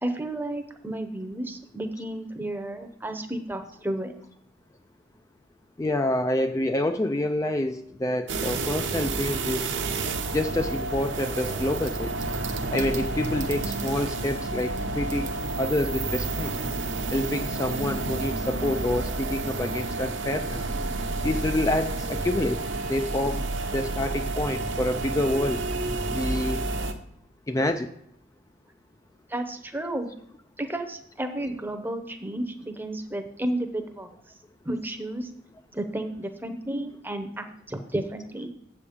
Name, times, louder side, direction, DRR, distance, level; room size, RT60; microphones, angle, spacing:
voice 1, 0.0-4.1 29.3-30.1 30.6-34.1 34.6-35.3 35.7-38.5, right 1 dB, 10° right, 7 dB, 0.7 m, -32 dB
voice 2, 5.8-9.8 10.3-12.1 12.7-16.5 17.1-20.6 21.2-23.5 23.7-25.6 26.1-26.6 27.5-27.9, left 1 dB, 15° left, 7 dB, 0.3 m, -27 dB
sound 1, 8.3-26.9, right 2 dB, 60° right, 0.8 m, -30 dB
7.9 x 5.0 x 7.0 m, 0.73 s
head